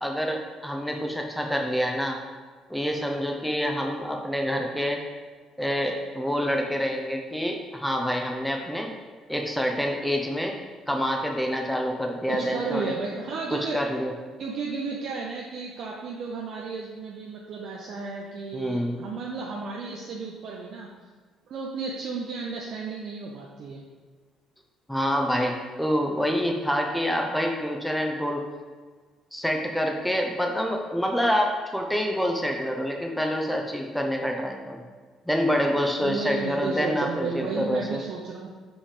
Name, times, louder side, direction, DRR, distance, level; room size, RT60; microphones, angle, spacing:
voice 1, 0.0-2.2 2.7-5.0 5.6-8.9 9.3-10.6 10.9-12.9 13.5-14.1 18.5-19.0 24.9-28.4 29.3-34.8 35.3-38.0, equal, 5° left, 1 dB, 0.9 m, -27 dB
voice 2, 12.3-13.8 14.4-20.9 21.5-23.8 36.0-38.5, right 4 dB, 55° right, -2 dB, 0.7 m, -33 dB
5.8 x 4.1 x 5.1 m, 1.5 s
hypercardioid pair, 50°, 0 cm